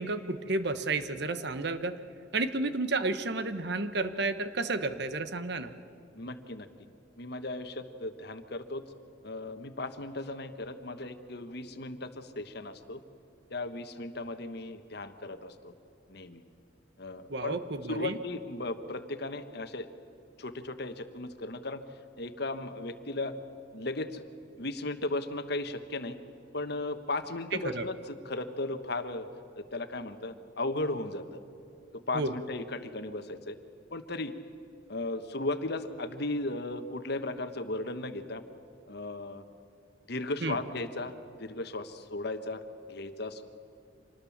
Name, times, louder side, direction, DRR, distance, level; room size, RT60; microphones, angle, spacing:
voice 1, 0.0-2.0 2.3-5.7 17.3-18.2 27.5-27.8 32.1-32.3 40.4-40.6, right 3 dB, 60° right, 11 dB, 1.1 m, -31 dB
voice 2, 6.1-6.7 7.2-8.8 9.2-13.0 13.5-15.7 16.1-16.4 17.0-17.6 17.9-19.9 20.4-21.8 22.2-23.3 23.7-24.2 24.6-26.2 26.5-29.3 29.6-31.4 31.9-33.6 33.9-34.3 34.9-38.4 38.9-39.4 40.1-42.6 42.9-43.4, left 2 dB, 55° left, 10 dB, 1.3 m, -36 dB
26.0 x 19.5 x 7.2 m, 2.6 s
head